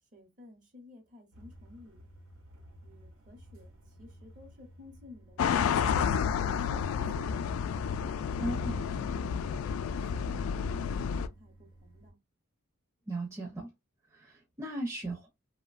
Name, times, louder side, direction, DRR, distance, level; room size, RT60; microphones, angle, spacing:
voice 1, 0.1-2.1 2.8-6.0 6.4-7.8 8.4-9.7 10.1-12.2, left 3 dB, 40° right, 0.8 m, -54 dB
sound 1, 1.3-12.1, equal, 90° right, 0.7 m, -55 dB
sound 2, 5.4-11.3, left 7 dB, 80° left, 0.3 m, -30 dB
voice 2, 8.4-8.8 13.1-13.7 14.1-15.3, right 1 dB, 15° right, 0.6 m, -36 dB
2.9 x 2.1 x 2.4 m
head